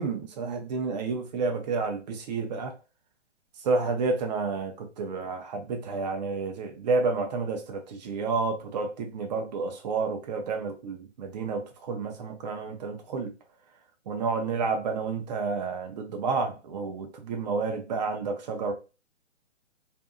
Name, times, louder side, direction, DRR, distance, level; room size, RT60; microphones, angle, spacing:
voice 1, 0.0-2.8 3.6-13.3 14.1-18.7, right 4 dB, 35° right, 0.6 m, -30 dB
2.6 x 2.6 x 2.4 m
figure-of-eight pair, 135°, 36 cm